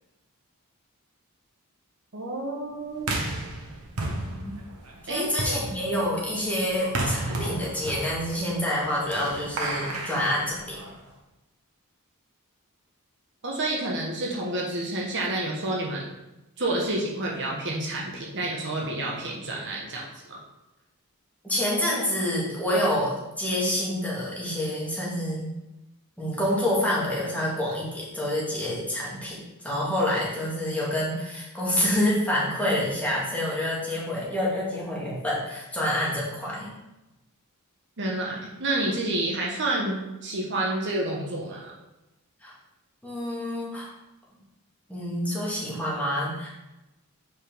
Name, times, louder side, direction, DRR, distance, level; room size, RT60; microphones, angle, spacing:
voice 1, 2.1-3.1 5.1-5.3 13.4-16.1 16.6-20.4 38.0-41.7, right 2 dB, 55° right, -2 dB, 1.4 m, -29 dB
sound 1, 3.0-11.1, right 2 dB, 90° right, 1.3 m, -33 dB
voice 2, 4.0-4.5 5.0-10.8 21.4-25.5 26.2-29.4 29.6-36.7 42.4-42.5 43.0-43.9 44.9-46.5, left 1 dB, 5° left, -7 dB, 2.2 m, -27 dB
7.7 x 5.2 x 3.8 m, 0.98 s
head